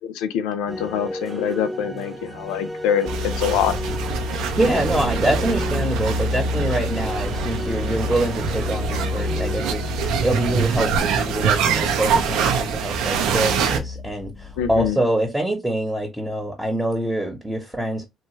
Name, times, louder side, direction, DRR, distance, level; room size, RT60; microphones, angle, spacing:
voice 1, 0.2-3.7 14.6-15.0, left 8 dB, 85° left, 0.3 m, -24 dB
sound 1, 0.7-10.5, equal, 25° right, 0.8 m, -34 dB
sound 2, 3.1-14.9, left 3 dB, 40° left, 0.8 m, -30 dB
sound 3, 3.1-13.8, right 7 dB, 80° right, 0.5 m, -25 dB
voice 2, 4.3-9.8 10.2-18.0, right 1 dB, 5° right, 1.1 m, -25 dB
3.0 x 2.3 x 3.0 m
supercardioid pair, 65°, 0 cm